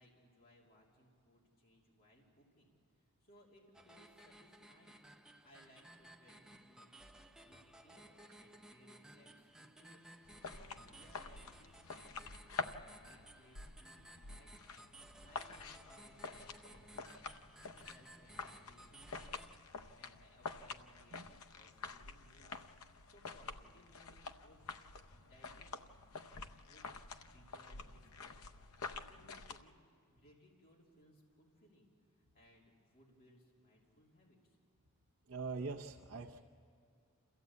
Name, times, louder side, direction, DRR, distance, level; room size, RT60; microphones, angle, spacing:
voice 1, 0.0-2.7 3.0-5.1 5.4-10.0 10.4-14.7 15.2-17.3 17.7-19.6 19.9-22.6 23.1-27.0 27.2-28.4 28.9-29.7 30.0-34.6, equal, 40° left, -3 dB, 2.9 m, -66 dB
sound 1, 3.7-19.6, right 1 dB, 5° right, 0.8 m, -59 dB
sound 2, 10.2-29.6, left 4 dB, 70° left, 0.7 m, -48 dB
voice 2, 35.3-36.4, right 4 dB, 65° right, 0 dB, 0.8 m, -43 dB
27.5 x 15.0 x 8.3 m, 2.3 s
head